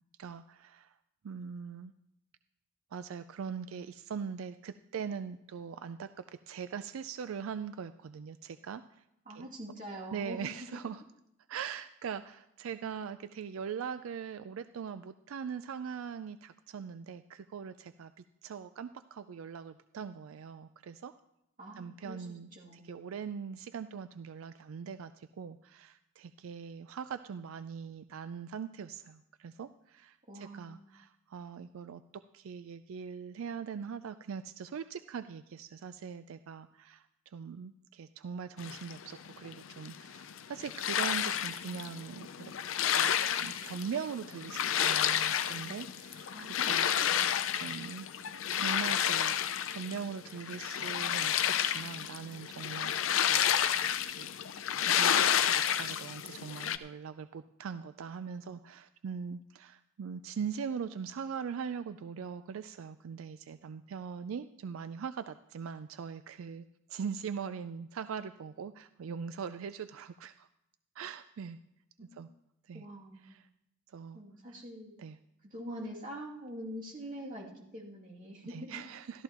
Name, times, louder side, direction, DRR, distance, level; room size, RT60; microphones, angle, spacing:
voice 1, 0.2-0.9 1.2-1.9 2.9-9.0 9.3-9.5 10.1-11.0 11.5-21.1 21.8-42.5 42.9-47.3 47.5-48.1 48.5-49.4 49.7-52.9 53.2-53.8 54.0-54.3 55.0-70.5 71.0-71.6 72.1-72.3 72.7-72.8 73.2-73.5 73.9-74.2 74.5-74.6 75.0-75.2 78.4-79.2, right 6 dB, 90° right, 12 dB, 0.4 m, -41 dB
voice 2, 9.3-10.7 21.6-23.1 30.3-30.8 46.3-47.5 72.0-72.2 72.7-73.4 74.1-75.0 75.4-78.8, equal, 45° right, -4 dB, 2.6 m, -45 dB
sound 1, 38.6-56.8, left 9 dB, 70° left, 0.5 m, -31 dB
13.5 x 13.0 x 3.0 m, 0.81 s
head